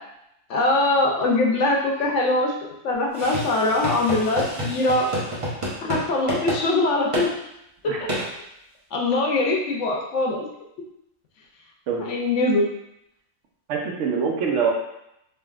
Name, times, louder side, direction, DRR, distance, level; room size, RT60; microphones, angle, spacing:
voice 1, 0.5-2.5 2.8-5.1 5.8-7.3 8.9-10.5 12.0-12.7, left 2 dB, 75° left, 0 dB, 0.9 m, -22 dB
sound 1, 3.1-6.0 6.3-6.6 7.1-7.3 8.1-8.3, equal, 35° right, 0.6 m, -28 dB
voice 2, 13.7-14.7, right 6 dB, 75° right, 0 dB, 0.9 m, -24 dB
3.4 x 2.5 x 2.3 m, 0.81 s
omnidirectional pair, 1.3 m